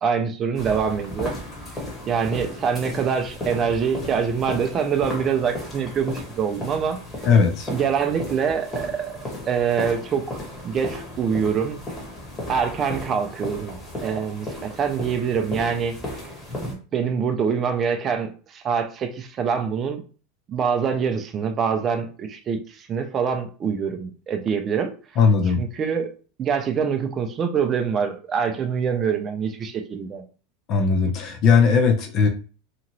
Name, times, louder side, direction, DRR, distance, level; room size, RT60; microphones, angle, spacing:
voice 1, 0.0-1.4 2.0-7.0 7.7-9.2 9.5-11.8 12.5-16.2 16.6-20.0 20.5-24.9 25.6-26.1 26.4-30.2, right 6 dB, 30° right, 7 dB, 0.4 m, -25 dB
sound 1, 0.5-16.7, left 1 dB, 20° left, 1.3 m, -35 dB
voice 2, 7.3-7.7 25.2-25.6 30.7-32.3, left 5 dB, 45° left, 5 dB, 0.7 m, -18 dB
2.9 x 2.4 x 2.9 m, 0.37 s
supercardioid pair, 125°, 0 cm